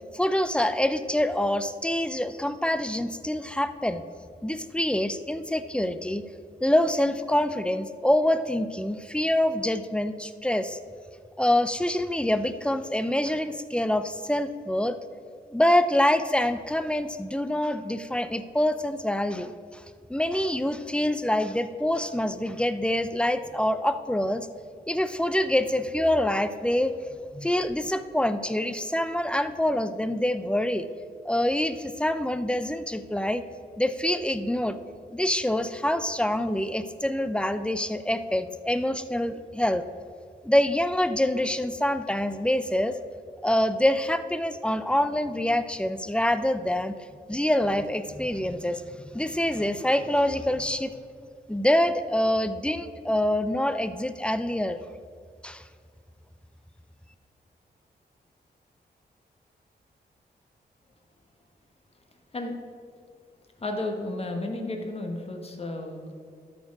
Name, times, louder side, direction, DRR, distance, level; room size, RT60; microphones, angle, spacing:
voice 1, 0.1-4.0 4.4-6.2 6.6-10.8 11.4-15.0 15.5-19.8 20.1-24.5 24.9-26.9 27.3-30.9 31.3-33.4 33.8-34.8 35.1-39.8 40.4-43.0 43.4-47.0 47.3-50.9 51.5-54.8 55.4-55.6, left 1 dB, 5° left, 11 dB, 0.4 m, -25 dB
voice 2, 63.6-66.1, left 2 dB, 35° left, 3 dB, 1.3 m, -32 dB
13.0 x 4.4 x 4.8 m, 2.2 s
cardioid pair, 85°, 17 cm